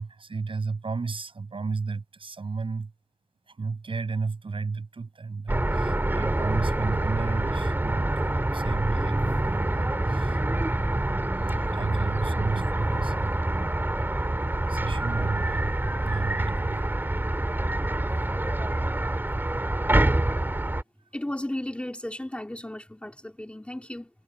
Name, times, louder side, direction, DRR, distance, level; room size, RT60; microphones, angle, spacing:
voice 1, 0.0-2.9 3.5-10.8 11.3-13.5 14.7-16.9, right 4 dB, 40° right, 6.9 m, -33 dB
sound 1, 5.5-20.8, right 1 dB, 15° right, 2.8 m, -26 dB
voice 2, 21.1-24.1, left 1 dB, 10° left, 2.7 m, -34 dB
cardioid pair, 60°, 13 cm